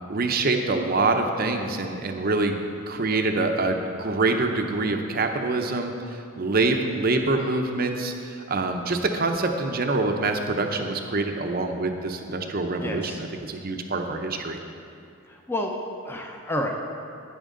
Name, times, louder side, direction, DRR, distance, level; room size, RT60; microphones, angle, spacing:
voice 1, 0.1-2.6 2.9-5.9 6.4-14.6, right 3 dB, 40° right, 5 dB, 0.6 m, -25 dB
voice 2, 12.8-13.2 15.3-15.7 16.0-16.8, left 1 dB, 10° left, 1 dB, 0.6 m, -30 dB
10.5 x 9.3 x 3.8 m, 2.6 s
head